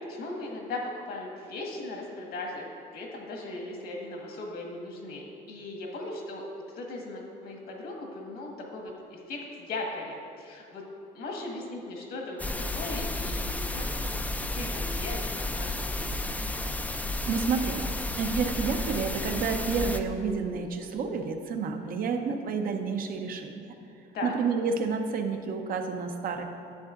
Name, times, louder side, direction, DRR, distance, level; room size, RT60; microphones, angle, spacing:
voice 1, 0.1-2.6 2.9-6.4 6.7-10.8 11.1-14.0 14.4-15.8 24.1-24.3, left 2 dB, 70° left, 0 dB, 1.6 m, -38 dB
sound 1, 12.4-20.0, left 2 dB, 10° left, 0.4 m, -32 dB
voice 2, 17.3-17.8 18.2-23.7 24.2-26.4, right 5 dB, 60° right, 5 dB, 0.7 m, -30 dB
10.5 x 7.3 x 2.5 m, 2.6 s
cardioid pair, 110°, 17 cm